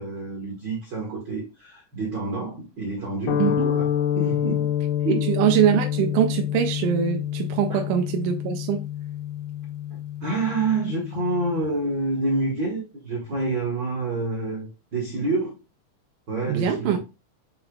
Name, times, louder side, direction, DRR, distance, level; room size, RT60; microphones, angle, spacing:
voice 1, 0.0-3.9 4.1-4.6 5.0-5.2 7.7-7.8 9.9-15.6 16.3-17.0, right 3 dB, 65° right, 1.1 m, -28 dB
sound 1, 3.3-11.6, left 11 dB, 90° left, 2.3 m, -27 dB
voice 2, 3.4-3.7 5.3-8.9 16.5-17.0, right 9 dB, 80° right, 1.8 m, -23 dB
7.8 x 2.8 x 2.2 m
omnidirectional pair, 3.9 m